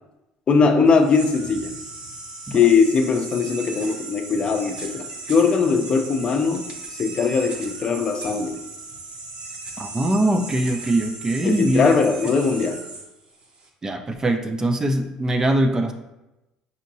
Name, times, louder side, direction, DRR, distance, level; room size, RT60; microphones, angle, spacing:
voice 1, 0.5-1.7 2.5-6.7 7.0-8.6 11.4-12.8, left 5 dB, 40° left, 5 dB, 0.5 m, -20 dB
sound 1, 0.9-13.7, right 3 dB, 40° right, 0.8 m, -37 dB
voice 2, 9.8-12.0 13.8-15.9, right 1 dB, 20° right, 6 dB, 0.4 m, -22 dB
5.0 x 2.8 x 2.7 m, 0.96 s
supercardioid pair, 90°, 3 cm